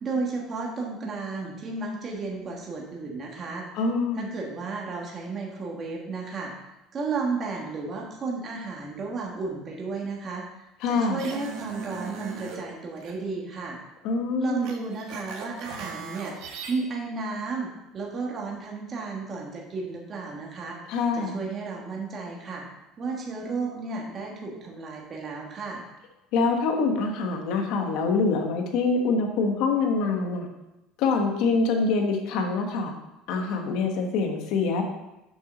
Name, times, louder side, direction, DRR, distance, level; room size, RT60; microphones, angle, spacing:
voice 1, 0.0-3.7 4.1-6.5 6.9-10.4 10.9-13.8 14.4-17.7 17.9-20.8 21.1-22.6 23.0-25.8, right 4 dB, 30° right, -1 dB, 1.4 m, -33 dB
voice 2, 3.7-4.3 10.8-11.2 14.0-14.7 20.9-21.4 26.3-30.5 31.0-32.9 33.3-34.8, left 4 dB, 60° left, 3 dB, 1.5 m, -25 dB
sound 1, 11.2-12.6 13.0-13.1 14.6-16.7, right 5 dB, 70° right, 1.6 m, -38 dB
7.4 x 6.0 x 5.2 m, 0.93 s
cardioid pair, 155°, 0 cm